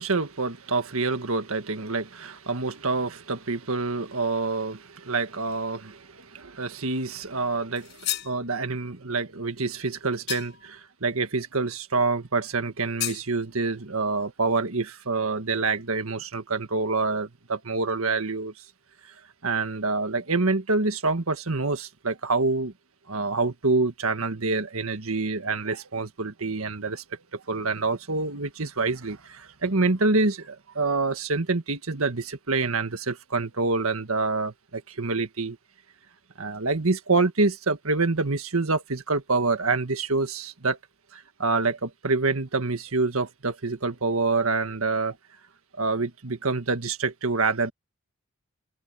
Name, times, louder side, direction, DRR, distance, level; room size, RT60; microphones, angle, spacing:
voice 1, 0.0-18.7 19.0-19.1 19.4-22.7 23.1-35.6 36.4-40.8 41.1-45.2 45.8-47.7, right 3 dB, 90° right, 1.7 m, -27 dB
sound 1, 7.8-8.4 10.3-10.7 13.0-13.3, left 13 dB, 50° left, 6.4 m, -32 dB
head